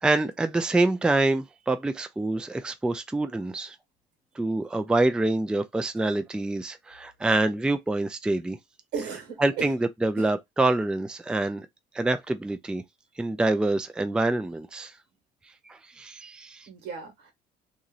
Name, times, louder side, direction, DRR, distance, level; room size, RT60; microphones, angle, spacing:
voice 1, 0.0-3.8 4.4-8.6 9.4-11.7 11.9-12.8 13.2-14.9 15.7-16.7, right 2 dB, 5° right, 0.3 m, -26 dB
voice 2, 8.9-9.7 10.1-10.3 16.7-17.3, right 5 dB, 85° right, 1.6 m, -35 dB
3.0 x 2.6 x 2.4 m
cardioid pair, 110°, 17 cm